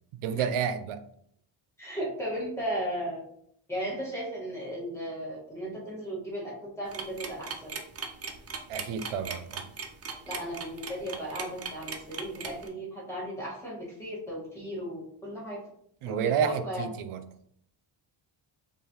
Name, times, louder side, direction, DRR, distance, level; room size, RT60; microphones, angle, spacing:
voice 1, 0.2-1.0 8.7-9.7 16.0-17.2, right 7 dB, 85° right, 10 dB, 0.6 m, -30 dB
voice 2, 1.8-3.2 3.7-7.7 10.3-15.6 16.1-16.8, equal, 5° left, -6 dB, 1.4 m, -36 dB
sound 1, 6.9-12.7, right 5 dB, 35° right, 0.4 m, -38 dB
4.8 x 2.5 x 2.8 m, 0.69 s
wide cardioid pair, 145°, 49 cm